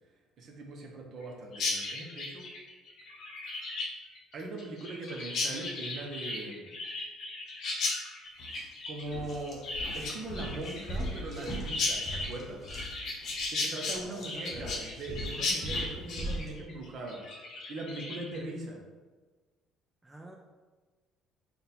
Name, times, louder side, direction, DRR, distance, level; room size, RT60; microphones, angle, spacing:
voice 1, 0.4-2.5 4.3-6.7 8.9-9.6 10.0-12.6 13.5-17.2 17.7-18.8, right 2 dB, 50° right, 1 dB, 0.7 m, -40 dB
Chirp tweet, 1.5-18.4, left 3 dB, 55° left, 0.8 m, -36 dB
sound 1, 8.4-8.6 9.0-16.5, equal, 30° left, 0.9 m, -40 dB
voice 2, 13.9-15.1 20.0-20.4, right 2 dB, 10° right, -1 dB, 0.4 m, -48 dB
4.0 x 2.2 x 4.0 m, 1.3 s
cardioid pair, 125°, 0 cm